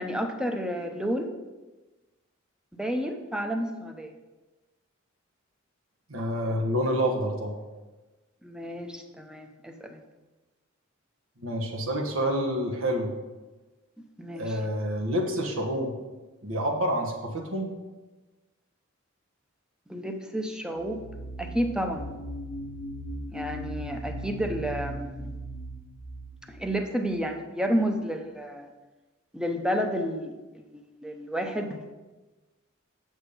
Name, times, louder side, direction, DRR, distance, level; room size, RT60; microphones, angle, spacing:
voice 1, 0.0-1.3 2.7-4.2 8.4-10.0 14.2-14.6 19.9-21.0 21.4-22.1 23.3-25.3 26.5-28.7 29.3-31.9, equal, 5° right, 5 dB, 0.7 m, -31 dB
voice 2, 6.1-7.6 11.4-13.1 14.3-15.9 16.4-17.7, equal, 75° right, 2 dB, 1.4 m, -28 dB
sound 1, 20.8-27.4, equal, 90° left, 1.0 m, -38 dB
8.8 x 6.4 x 5.2 m, 1.2 s
head